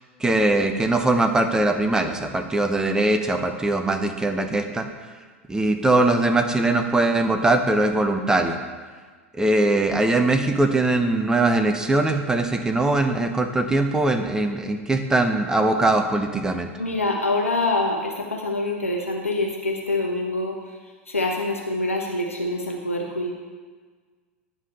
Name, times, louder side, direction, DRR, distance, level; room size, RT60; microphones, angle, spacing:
voice 1, 0.2-4.9 5.5-8.6 9.3-16.7, right 2 dB, 10° right, 6 dB, 0.8 m, -21 dB
voice 2, 16.8-20.6 21.1-23.3, left 2 dB, 85° left, 1 dB, 1.1 m, -25 dB
9.7 x 5.2 x 5.6 m, 1.5 s
figure-of-eight pair, 85°, 7 cm